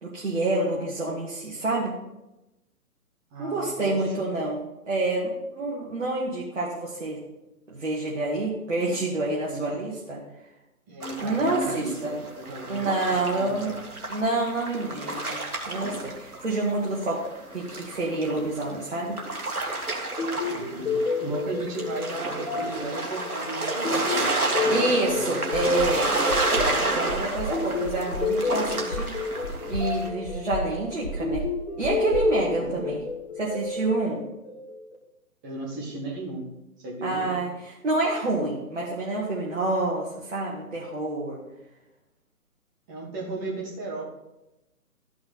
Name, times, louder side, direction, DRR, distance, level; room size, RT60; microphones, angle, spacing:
voice 1, 0.0-1.9 3.4-4.6 4.9-7.2 7.7-10.2 11.2-12.1 12.7-13.7 14.1-15.4 15.7-17.2 17.5-19.2 24.7-26.1 26.8-29.3 29.7-31.4 31.8-33.0 33.4-34.2 37.0-41.4, right 2 dB, 50° right, -5 dB, 2.0 m, -27 dB
voice 2, 3.3-4.3 9.5-9.7 10.9-13.8 20.5-25.8 32.5-32.9 35.4-37.3 42.9-44.0, right 2 dB, 10° right, -3 dB, 1.1 m, -36 dB
sound 1, 11.0-16.7 17.0-30.1, right 2 dB, 70° right, 1.9 m, -30 dB
sound 2, 20.2-34.9, left 4 dB, 45° left, 1.7 m, -31 dB
sound 3, 25.5-26.0 26.3-26.7 27.1-27.5 27.8-28.3 28.7-29.1 29.4-29.9 30.2-30.7 31.0-31.5 31.8-33.0, right 1 dB, 20° left, 0.5 m, -33 dB
12.5 x 5.8 x 4.3 m, 0.95 s
figure-of-eight pair, 140°, 45 cm